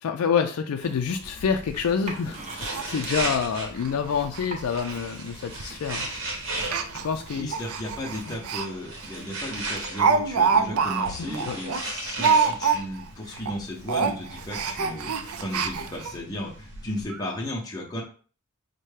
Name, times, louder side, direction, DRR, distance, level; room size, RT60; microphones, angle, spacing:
voice 1, 0.0-6.1 7.0-7.5 8.3-8.4 11.5-11.6, left 6 dB, 85° left, 6 dB, 0.4 m, -27 dB
sound 1, 0.8-8.2, right 2 dB, 30° right, 0.6 m, -45 dB
sound 2, 1.2-17.0, right 2 dB, 60° right, 1.0 m, -37 dB
Speech, 1.8-1.9 2.3-2.4 2.7-2.8 3.2-3.3 3.8-3.9 4.2-4.5 4.7-4.8 5.6-5.8 6.6-8.7 9.0-9.1 9.5-13.1 13.3-13.6 13.8-16.1 16.7-16.8 17.1-17.2, right 5 dB, 80° right, 0.4 m, -26 dB
voice 2, 7.4-18.0, left 1 dB, 15° left, -4 dB, 0.6 m, -35 dB
5.4 x 2.2 x 3.2 m, 0.41 s
head